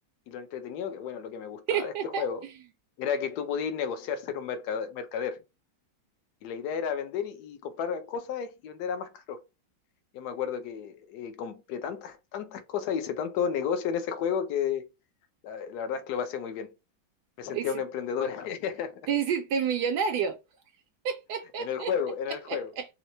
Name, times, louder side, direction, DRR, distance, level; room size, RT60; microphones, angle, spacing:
voice 1, 0.3-2.4 3.0-5.4 6.4-9.4 10.1-14.9 15.4-16.7 17.4-19.0 21.6-22.7, left 7 dB, 65° left, 1.1 m, -32 dB
voice 2, 1.7-2.2 17.5-17.7 19.1-20.4 21.0-21.9 22.5-22.9, right 7 dB, 70° right, 1.0 m, -29 dB
4.3 x 2.0 x 2.6 m
omnidirectional pair, 2.0 m